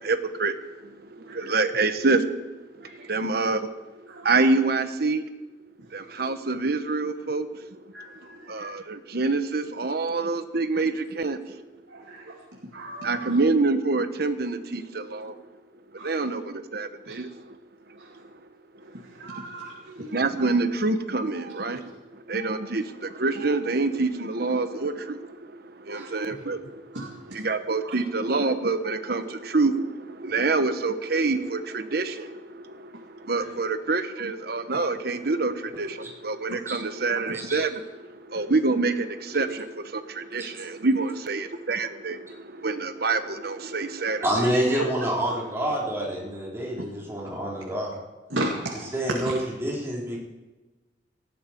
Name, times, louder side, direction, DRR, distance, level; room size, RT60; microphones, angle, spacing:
voice 1, 0.0-0.5 1.1-2.3 2.9-3.6 4.2-5.2 5.9-7.8 8.5-11.4 13.0-15.3 16.0-17.4 20.1-21.9 22.3-26.8 27.3-44.3 44.8-44.9, right 3 dB, 55° right, 9 dB, 1.1 m, -26 dB
voice 2, 1.2-1.5 2.8-3.1 4.1-4.4 7.9-8.7 11.9-12.4 12.7-13.3 16.0-16.3 17.1-17.2 18.0-18.1 18.9-20.5 25.9-26.1 26.9-27.1 27.8-27.9 33.4-33.5 36.5-36.6 37.3-37.4 48.3-48.9 49.2-49.3, right 1 dB, 80° right, -1 dB, 2.2 m, -36 dB
voice 3, 44.2-47.9 48.9-50.2, right 1 dB, 15° right, -5 dB, 4.2 m, -27 dB
18.5 x 14.0 x 4.6 m, 1.2 s
head